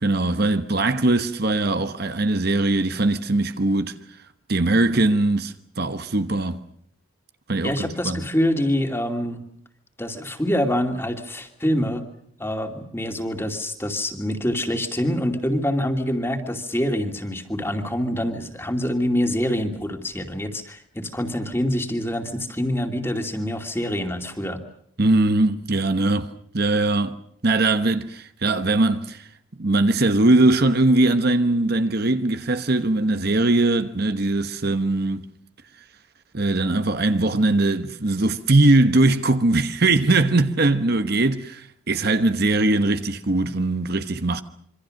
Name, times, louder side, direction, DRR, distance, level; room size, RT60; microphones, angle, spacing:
voice 1, 0.0-4.0 4.5-6.6 7.5-8.2 25.0-26.3 26.5-27.2 27.4-29.2 29.6-35.2 36.3-44.4, right 2 dB, 50° right, 1.2 m, -20 dB
voice 2, 7.6-9.4 10.0-12.0 12.4-24.6, equal, 10° left, 2.6 m, -25 dB
26.5 x 25.0 x 6.5 m
head